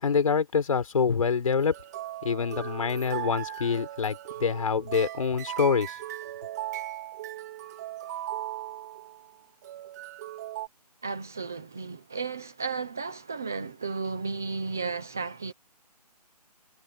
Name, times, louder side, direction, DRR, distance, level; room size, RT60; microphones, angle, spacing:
voice 1, 0.0-1.7 2.2-6.0, left 6 dB, 55° left, 5.1 m, -26 dB
sound 1, 1.6-9.3 9.6-10.7, right 14 dB, 25° right, 2.1 m, -38 dB
voice 2, 11.0-15.5, right 4 dB, 5° right, 0.4 m, -34 dB
hypercardioid pair, 160°, 21 cm